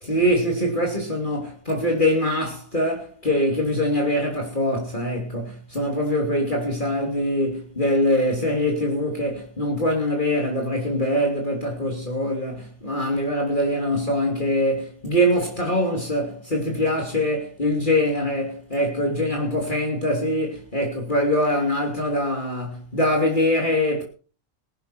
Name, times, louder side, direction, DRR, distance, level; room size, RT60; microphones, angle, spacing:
voice 1, 0.0-24.0, left 1 dB, 35° left, 3.1 m, -23 dB
21.0 x 11.0 x 4.4 m
omnidirectional pair, 1.4 m